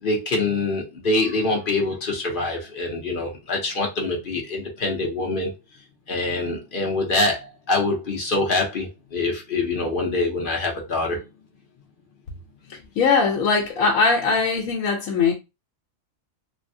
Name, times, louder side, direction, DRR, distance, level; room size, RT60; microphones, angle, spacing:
voice 1, 0.0-5.5 6.1-11.2, left 2 dB, 50° left, 0.8 m, -25 dB
voice 2, 13.0-15.3, left 4 dB, 85° left, 1.1 m, -20 dB
3.3 x 2.1 x 2.6 m
omnidirectional pair, 1.4 m